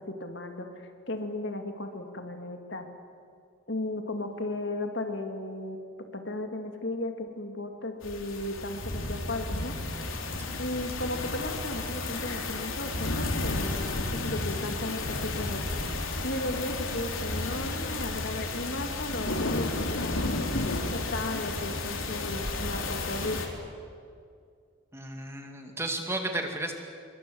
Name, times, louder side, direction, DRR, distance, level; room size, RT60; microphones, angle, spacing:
voice 1, 0.0-2.9 3.7-5.8 6.1-9.7 10.6-15.7 16.2-20.3 20.9-23.5, left 1 dB, 60° left, 5 dB, 2.7 m, -35 dB
sound 1, 8.0-23.5, left 2 dB, 80° left, 3.5 m, -32 dB
voice 2, 24.9-26.7, right 1 dB, 10° right, 4 dB, 2.2 m, -33 dB
27.5 x 23.5 x 8.0 m, 2.3 s
head